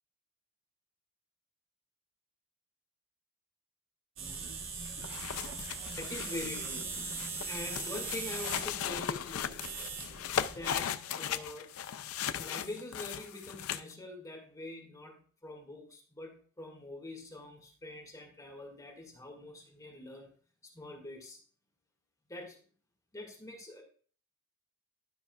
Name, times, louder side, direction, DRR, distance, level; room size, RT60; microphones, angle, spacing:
sound 1, 4.2-10.8, right 4 dB, 65° right, 1.2 m, -40 dB
sound 2, 4.8-13.9, left 9 dB, 90° left, 0.4 m, -38 dB
voice 1, 6.0-9.9 10.5-11.7 12.4-20.3 20.7-21.4 22.3-22.6 23.1-23.8, left 2 dB, 15° left, 0 dB, 1.8 m, -44 dB
12.0 x 5.7 x 2.3 m, 0.43 s
head